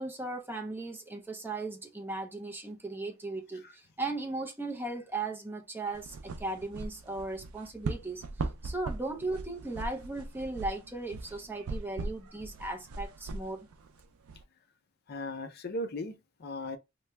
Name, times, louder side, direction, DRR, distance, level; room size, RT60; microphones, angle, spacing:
voice 1, 0.0-13.7, right 2 dB, 10° right, 0.6 m, -37 dB
sound 1, 5.9-14.4, right 3 dB, 80° right, 0.4 m, -40 dB
voice 2, 15.1-16.8, left 1 dB, 50° left, 0.5 m, -37 dB
2.9 x 2.2 x 3.3 m
head